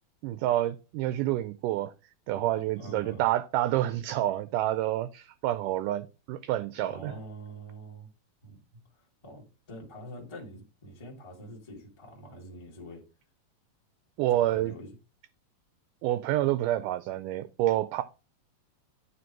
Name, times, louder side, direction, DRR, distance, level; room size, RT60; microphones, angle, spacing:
voice 1, 0.2-1.9 2.3-7.1 14.2-14.7 16.0-18.0, right 14 dB, 80° right, 1.9 m, -28 dB
voice 2, 2.3-3.3 6.9-8.1 8.4-8.6 8.9-13.0 14.3-14.9, right 1 dB, 20° left, 0.8 m, -45 dB
9.4 x 3.4 x 4.5 m
omnidirectional pair, 4.1 m